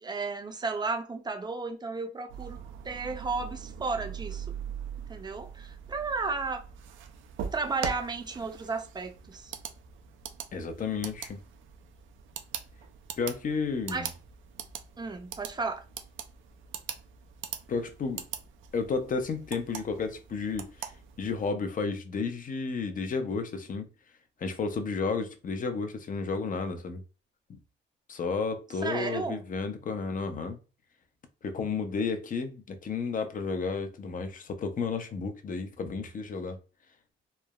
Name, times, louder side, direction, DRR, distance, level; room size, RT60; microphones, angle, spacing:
voice 1, 0.0-2.6 2.8-4.5 5.1-6.6 7.5-9.5 13.9-14.1 15.0-15.8 28.8-29.4, right 4 dB, 20° right, 0.5 m, -33 dB
sound 1, 2.3-21.5, right 8 dB, 80° right, 0.5 m, -42 dB
voice 2, 10.5-11.4 13.2-14.1 17.7-18.3 18.7-20.7 21.2-23.9 24.4-27.0 28.1-30.6 31.4-36.6, left 4 dB, 45° left, 0.6 m, -32 dB
3.1 x 2.0 x 2.3 m
cardioid pair, 90°, 20 cm